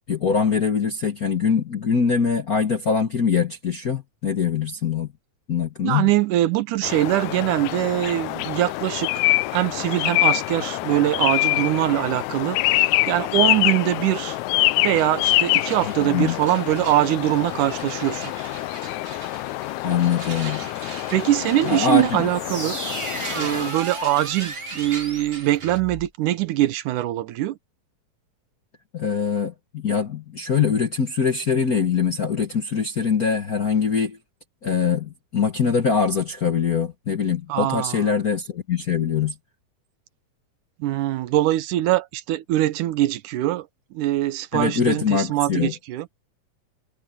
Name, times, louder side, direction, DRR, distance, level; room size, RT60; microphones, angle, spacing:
voice 1, 0.1-5.1 5.5-6.1 16.0-16.4 19.8-20.6 21.6-22.0 28.9-34.2 34.6-39.3 44.5-45.7, left 6 dB, 50° left, 1.1 m, -23 dB
voice 2, 5.8-9.1 9.5-14.4 14.8-18.3 20.5-20.6 21.1-22.8 23.3-27.6 37.5-38.1 40.8-43.7 43.9-46.1, right 14 dB, 80° right, 2.4 m, -23 dB
sound 1, 6.8-23.7, left 18 dB, 80° left, 1.9 m, -25 dB
sound 2, 14.2-14.3 14.6-25.8, right 5 dB, 50° right, 3.6 m, -41 dB
sound 3, 22.3-26.1, right 1 dB, 10° right, 1.7 m, -34 dB
omnidirectional pair, 3.6 m